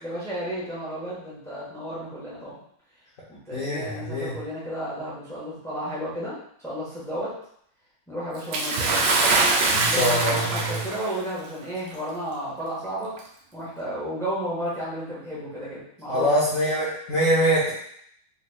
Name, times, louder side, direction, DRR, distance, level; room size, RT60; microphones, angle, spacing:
voice 1, 0.0-2.6 3.3-6.4 6.6-7.3 8.1-9.2 9.9-13.1 13.5-16.3, equal, 5° left, -8 dB, 0.5 m, -33 dB
voice 2, 3.5-4.4 9.7-10.8 16.1-17.7, equal, 60° left, -7 dB, 0.9 m, -24 dB
Bathtub (filling or washing) / Splash splatter, 8.5-11.1 12.0-12.1 13.1-13.2, right 3 dB, 70° right, 1.1 m, -23 dB
4.0 x 3.1 x 2.3 m, 0.68 s
omnidirectional pair, 2.3 m